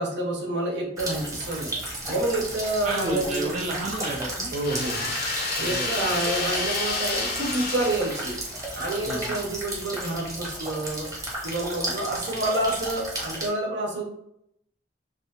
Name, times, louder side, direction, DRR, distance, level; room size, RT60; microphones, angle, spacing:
voice 1, 0.0-1.7 2.1-3.5 4.5-8.4 8.7-14.0, right 1 dB, 70° right, -1 dB, 0.7 m, -28 dB
sound 1, 1.0-13.5, right 1 dB, 20° right, 0.9 m, -34 dB
voice 2, 2.8-4.5 5.7-6.2 9.1-9.4, right 2 dB, 40° right, -2 dB, 0.3 m, -32 dB
sound 2, 4.6-8.7, left 3 dB, 55° left, 0.6 m, -30 dB
2.5 x 2.3 x 2.8 m, 0.76 s
head